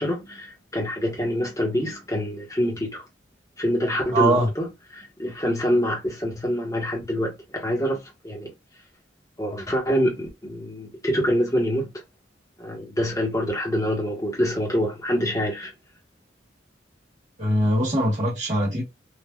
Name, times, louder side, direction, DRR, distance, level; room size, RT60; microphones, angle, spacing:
voice 1, 0.0-3.0 3.6-8.0 8.2-8.5 9.4-11.9 12.6-15.7, equal, 20° left, 1.1 m, -25 dB
voice 2, 4.1-4.5 17.4-18.8, right 1 dB, 40° right, 1.2 m, -22 dB
3.4 x 2.4 x 2.3 m
head